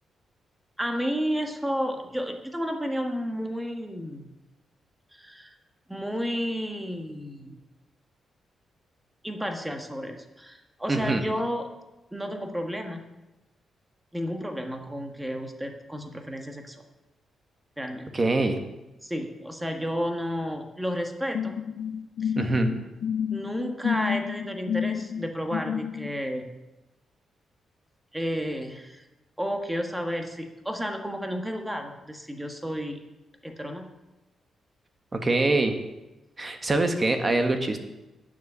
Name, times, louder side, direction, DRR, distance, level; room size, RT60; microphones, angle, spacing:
voice 1, 0.8-4.3 5.1-5.5 5.9-7.6 9.2-11.7 12.1-13.1 14.1-16.8 17.8-18.1 19.0-21.5 22.2-22.3 23.3-26.5 28.1-29.0 29.4-33.0 33.4-33.9, equal, 5° right, 4 dB, 1.4 m, -32 dB
voice 2, 10.9-11.2 18.1-18.6 22.4-22.7 35.1-35.7 36.4-37.8, right 2 dB, 30° right, 6 dB, 1.3 m, -24 dB
sound 1, 21.3-26.1, left 8 dB, 75° left, 0.7 m, -30 dB
9.3 x 7.2 x 6.9 m, 1.0 s
cardioid pair, 95°, 0 cm